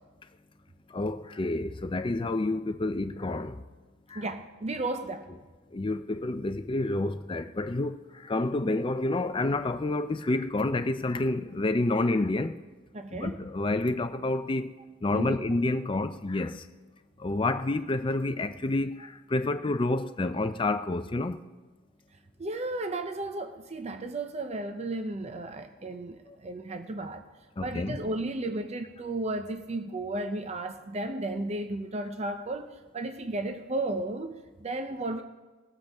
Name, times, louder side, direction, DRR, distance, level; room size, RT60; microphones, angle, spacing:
voice 1, 0.9-3.6 4.1-4.3 5.7-8.0 8.3-12.5 13.1-14.7 15.0-16.6 17.2-19.0 19.3-21.4 27.6-28.0, left 2 dB, 25° left, 0.4 m, -29 dB
voice 2, 4.1-5.3 12.9-13.4 15.1-15.4 22.4-27.2 27.6-35.2, right 2 dB, 30° right, 0.5 m, -34 dB
20.5 x 7.8 x 3.5 m
head